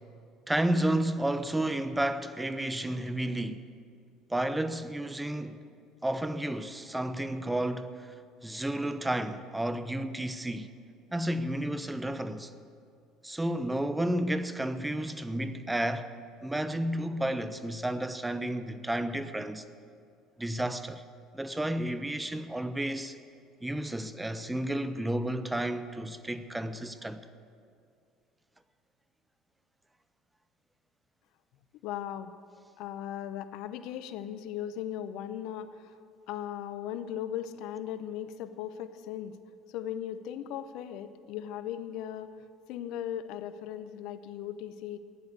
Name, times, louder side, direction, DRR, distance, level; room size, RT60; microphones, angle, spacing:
voice 1, 0.5-3.7 4.3-5.6 6.0-8.1 8.4-10.7 11.1-12.5 13.2-16.1 16.4-19.6 20.4-21.0 21.3-23.2 23.6-27.3, right 1 dB, 10° right, 0.9 m, -31 dB
voice 2, 31.8-32.3 32.8-36.0 36.3-39.4 39.7-42.3 42.7-45.0, left 10 dB, 70° left, 0.7 m, -38 dB
15.0 x 10.5 x 8.2 m
hypercardioid pair, 70°, 0 cm